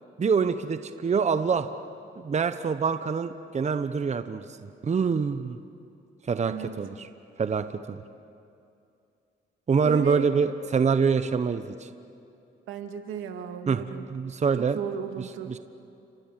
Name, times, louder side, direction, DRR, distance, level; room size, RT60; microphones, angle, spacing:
voice 1, 0.2-1.7 2.2-4.4 4.8-5.6 6.3-7.1 7.4-8.0 9.7-11.9 13.7-14.8 15.5-15.6, right 5 dB, 35° right, 10 dB, 1.1 m, -25 dB
voice 2, 6.4-6.8 9.8-10.3 12.7-14.0 14.6-15.6, right 8 dB, 85° right, 6 dB, 2.2 m, -35 dB
29.5 x 26.0 x 7.6 m, 2.5 s
cardioid pair, 90°, 20 cm